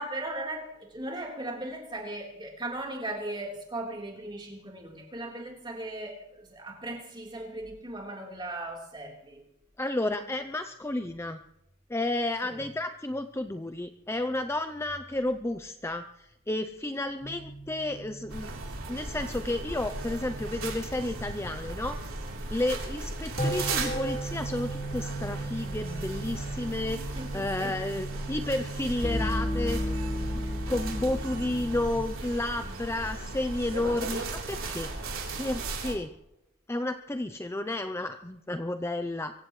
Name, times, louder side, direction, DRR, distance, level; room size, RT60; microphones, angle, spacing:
voice 1, 0.0-9.4 12.4-12.6 27.2-27.8, right 1 dB, 20° right, -1 dB, 3.8 m, -38 dB
voice 2, 9.8-11.4 11.9-18.5 18.9-22.0 22.5-29.8 30.3-34.9 35.4-36.1 36.7-39.3, left 1 dB, 10° left, 8 dB, 0.5 m, -32 dB
sound 1, 17.2-31.9, equal, 40° left, 3.7 m, -36 dB
sound 2, 18.3-35.9, right 2 dB, 80° right, 3.6 m, -37 dB
24.5 x 16.0 x 3.2 m, 0.84 s
head